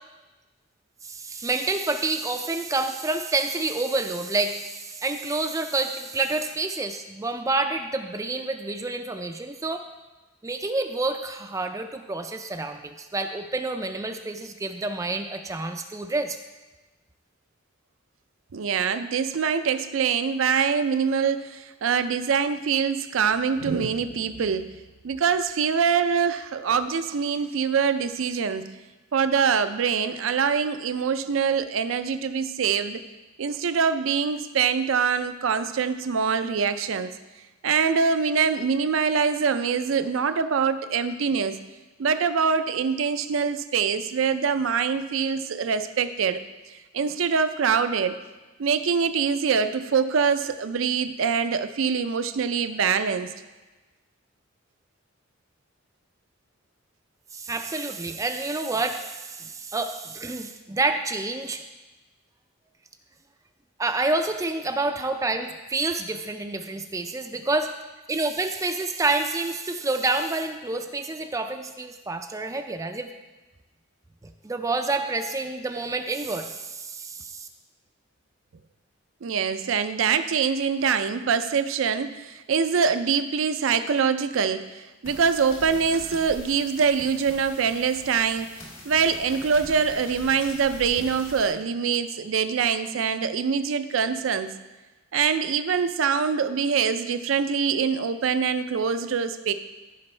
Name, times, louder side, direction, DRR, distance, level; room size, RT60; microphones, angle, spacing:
voice 1, 1.0-9.9 10.4-16.4 57.3-61.6 63.8-67.7 68.1-73.1 74.4-77.5, right 3 dB, 15° right, 6 dB, 0.4 m, -28 dB
voice 2, 18.5-24.8 25.0-28.7 29.1-33.0 33.4-37.1 37.6-41.6 42.0-46.4 46.9-48.2 48.6-53.3 79.2-88.5 88.8-94.5 95.1-99.5, right 6 dB, 75° right, 10 dB, 0.5 m, -24 dB
sound 1, 85.0-91.5, left 1 dB, 80° left, 2.8 m, -43 dB
14.5 x 5.3 x 3.3 m, 1.2 s
head